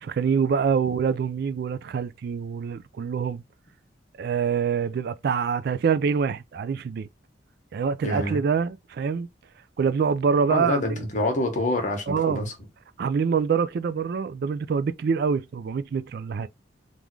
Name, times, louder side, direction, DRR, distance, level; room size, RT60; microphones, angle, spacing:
voice 1, 0.0-3.4 4.2-7.1 7.7-9.3 9.8-11.0 12.1-12.5 13.0-16.5, right 6 dB, 60° right, 0.3 m, -25 dB
voice 2, 8.0-8.4 10.5-12.5, left 1 dB, 45° left, 1.3 m, -26 dB
3.6 x 2.5 x 4.6 m
head